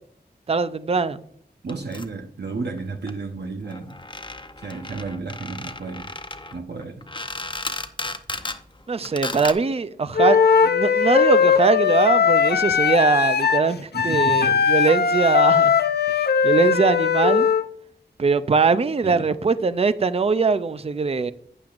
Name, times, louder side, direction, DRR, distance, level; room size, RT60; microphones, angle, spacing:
voice 1, 0.5-1.2 8.9-15.8 16.4-17.5 18.2-21.3, right 4 dB, 35° right, 0.4 m, -21 dB
voice 2, 1.6-4.0 4.6-6.1 6.5-7.0 13.9-14.7 19.0-19.2, right 3 dB, 70° right, 1.0 m, -32 dB
sound 1, 1.7-2.1 2.8-2.9 3.1-3.2 3.4-3.5 3.6-8.6 9.0-9.5, left 2 dB, 25° left, 0.7 m, -34 dB
Wind instrument woodwind instrument, 10.2-17.6, left 6 dB, 65° left, 0.5 m, -19 dB
12.0 x 8.7 x 2.5 m
wide cardioid pair, 75°, 18 cm